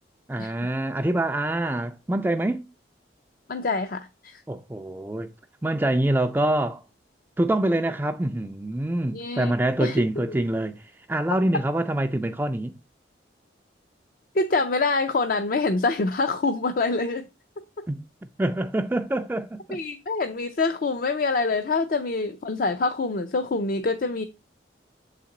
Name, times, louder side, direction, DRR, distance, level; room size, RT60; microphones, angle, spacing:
voice 1, 0.3-2.6 4.5-5.3 5.6-6.8 7.4-12.8 17.9-18.0 18.4-19.8, right 1 dB, 10° right, 0.3 m, -25 dB
voice 2, 3.5-4.4 9.1-9.5 9.8-10.3 14.3-17.3 19.7-24.2, left 3 dB, 50° left, 0.5 m, -25 dB
6.6 x 4.1 x 3.7 m
head